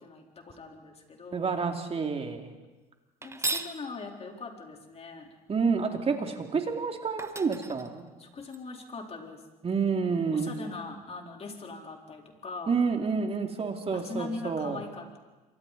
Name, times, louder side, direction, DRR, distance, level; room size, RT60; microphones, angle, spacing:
voice 1, 0.0-1.5 3.2-5.3 5.8-6.3 8.2-9.4 10.3-12.8 13.9-15.2, left 3 dB, 35° left, 2 dB, 4.0 m, -41 dB
voice 2, 1.3-2.5 5.5-8.1 9.6-10.5 12.7-14.8, right 5 dB, 35° right, 4 dB, 2.7 m, -29 dB
sound 1, 3.2-3.8 6.7-6.8 7.2-8.6, right 2 dB, 15° right, 1.3 m, -35 dB
27.5 x 24.0 x 4.2 m, 1.2 s
supercardioid pair, 80°, 18 cm